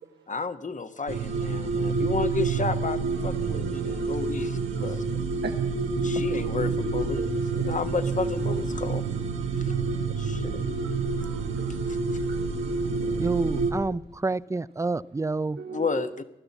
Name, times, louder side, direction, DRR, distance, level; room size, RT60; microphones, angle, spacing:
voice 1, 0.3-5.0 6.0-7.2 7.5-9.0 9.6-9.7 10.2-10.6 11.9-12.0 15.7-16.2, left 4 dB, 40° left, 1.2 m, -32 dB
sound 1, 1.1-13.7, right 4 dB, 90° right, 1.5 m, -28 dB
voice 2, 3.5-4.0 4.8-4.9 5.4-5.5 6.4-7.3 8.7-8.9 9.7-10.0 10.8-10.9 11.2-11.8 12.3-12.4 12.7-13.3 15.6-16.1, right 7 dB, 60° right, 1.1 m, -40 dB
voice 3, 13.2-15.6, right 3 dB, 15° right, 0.5 m, -28 dB
15.5 x 11.5 x 7.2 m
supercardioid pair, 40°, 20 cm